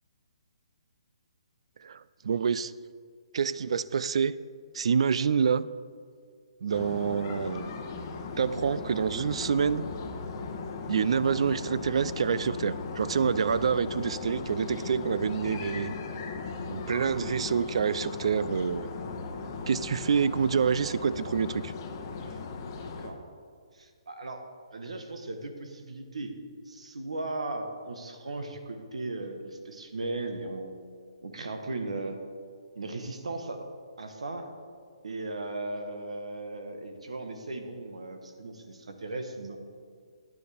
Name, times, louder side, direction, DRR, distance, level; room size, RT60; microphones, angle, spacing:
voice 1, 1.8-2.7 3.3-4.3 4.7-5.7 6.6-7.7 8.4-9.8 10.9-16.0 16.7-18.9 19.7-21.7, right 6 dB, 65° right, 17 dB, 0.3 m, -27 dB
sound 1, 6.7-23.1, left 4 dB, 35° left, 0.8 m, -37 dB
voice 2, 22.8-23.2 23.7-24.4 24.7-26.3 26.7-30.7 31.2-32.2 32.7-33.7 34.0-34.5 35.0-39.6, right 2 dB, 90° right, 6 dB, 1.2 m, -37 dB
9.7 x 9.3 x 3.4 m, 2.1 s
hypercardioid pair, 155°, 3 cm